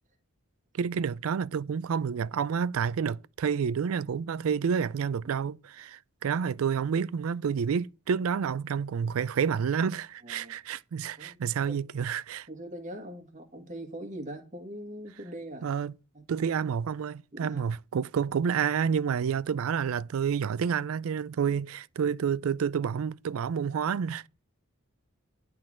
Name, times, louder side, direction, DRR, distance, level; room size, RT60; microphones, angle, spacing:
voice 1, 0.7-12.5 15.6-15.9 16.3-24.3, right 7 dB, 85° right, 0.4 m, -29 dB
voice 2, 10.2-10.5 11.2-11.4 11.7-11.8 12.5-15.7 16.1-16.3 17.3-17.6, right 1 dB, 35° right, 1.7 m, -41 dB
11.0 x 3.8 x 7.5 m
head